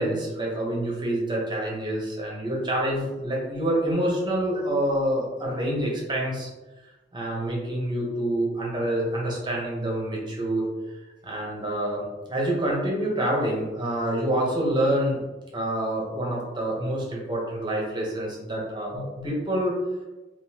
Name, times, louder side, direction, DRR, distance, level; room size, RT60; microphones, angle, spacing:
voice 1, 0.0-6.5 6.8-10.9 11.2-15.2 15.5-19.7, right 1 dB, 25° right, -3 dB, 0.9 m, -27 dB
3.7 x 2.6 x 2.8 m, 1.1 s
head